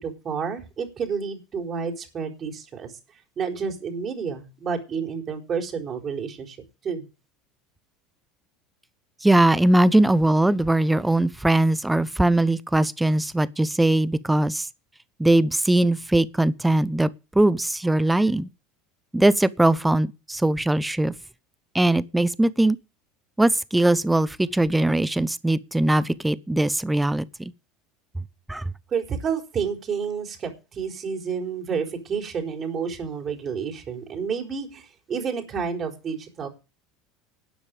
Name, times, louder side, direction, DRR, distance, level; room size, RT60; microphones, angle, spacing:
voice 1, 0.0-2.9 3.4-6.6 6.8-7.0 28.9-36.5, right 6 dB, 35° right, 4.3 m, -30 dB
voice 2, 9.2-14.7 15.2-17.1 17.3-18.5 19.1-21.1 21.7-22.8 23.4-27.5 28.5-28.6, right 1 dB, 5° right, 0.9 m, -20 dB
12.5 x 9.8 x 5.3 m
figure-of-eight pair, 70°, 0 cm